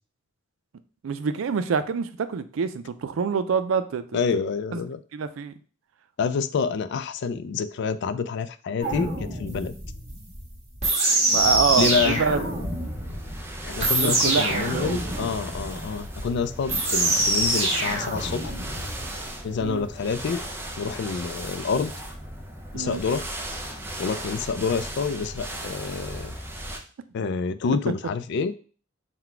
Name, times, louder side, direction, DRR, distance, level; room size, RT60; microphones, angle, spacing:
voice 1, 1.0-4.2 4.7-4.8 5.1-5.5 11.3-12.4 14.0-15.3 19.6-19.9 22.7-23.0, right 6 dB, 90° right, 12 dB, 0.4 m, -26 dB
voice 2, 4.1-5.0 6.2-9.7 11.8-12.2 13.6-18.5 19.4-20.4 20.8-21.9 22.7-23.2 24.0-26.3 27.1-28.5, left 5 dB, 60° left, 13 dB, 0.3 m, -27 dB
sound 1, 8.8-19.2, right 2 dB, 35° right, 1.3 m, -26 dB
sound 2, 11.4-26.8, right 1 dB, 10° right, 0.5 m, -37 dB
4.0 x 2.2 x 4.4 m, 0.41 s
head